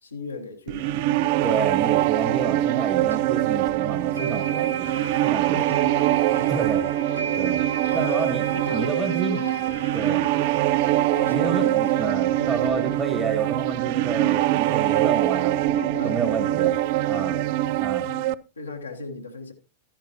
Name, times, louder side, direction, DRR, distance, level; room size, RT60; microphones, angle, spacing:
voice 1, 0.0-1.2 5.5-6.5 7.2-7.5 7.9-9.6 11.1-11.7 11.9-12.0 12.4-12.6 15.8-16.2 17.1-17.5 18.0-18.3 18.6-19.5, left 3 dB, 80° left, 1.4 m, -37 dB
sound 1, 0.7-18.3, right 14 dB, 50° right, 0.4 m, -23 dB
voice 2, 1.4-5.7 6.4-6.9 7.4-7.6 7.9-9.4 9.9-10.3 11.3-15.6 16.0-16.7 17.1-17.4 17.8-18.1, right 4 dB, 15° right, 1.5 m, -30 dB
sound 2, 3.1-3.2 4.2-14.2, right 4 dB, 90° right, 1.3 m, -36 dB
12.0 x 10.5 x 2.9 m
figure-of-eight pair, 95°, 0 cm